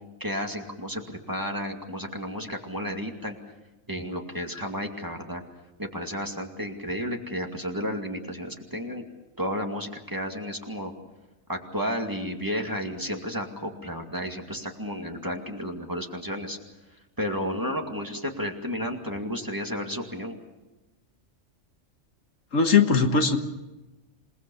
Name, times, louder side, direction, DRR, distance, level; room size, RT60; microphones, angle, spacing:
voice 1, 0.2-3.4 3.9-5.4 5.8-9.0 9.4-10.9 11.5-16.6 17.2-20.4, equal, 15° right, 3 dB, 2.3 m, -32 dB
voice 2, 22.5-23.4, left 5 dB, 75° left, 6 dB, 1.9 m, -20 dB
27.5 x 19.5 x 7.0 m, 1.1 s
omnidirectional pair, 1.3 m